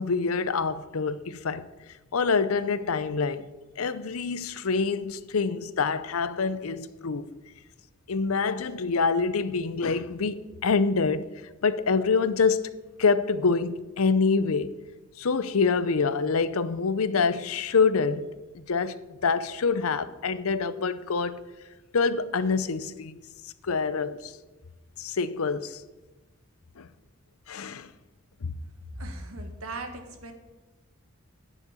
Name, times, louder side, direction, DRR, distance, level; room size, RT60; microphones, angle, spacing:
voice 1, 0.0-1.7 2.1-3.5 3.8-7.3 8.1-11.3 11.6-12.7 13.0-14.7 15.2-18.3 18.5-21.4 21.9-23.2 23.6-24.3 25.0-25.8 26.8-26.9 27.5-27.9 28.4-28.5, left 4 dB, 85° left, 0.6 m, -26 dB
voice 2, 28.9-30.3, right 2 dB, 85° right, 1.7 m, -38 dB
10.0 x 6.4 x 8.9 m
head